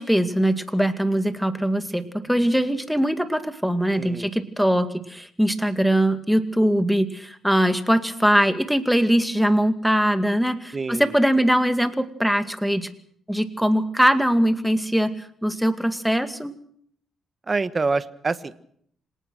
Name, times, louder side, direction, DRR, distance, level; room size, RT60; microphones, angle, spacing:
voice 1, 0.0-12.9 13.3-15.1 15.4-16.5, equal, ahead, 8 dB, 2.2 m, -21 dB
voice 2, 4.0-4.3 10.7-11.1 17.5-18.6, right 3 dB, 30° right, 13 dB, 1.3 m, -26 dB
26.5 x 18.5 x 6.3 m, 0.65 s
cardioid pair, 90°, 0 cm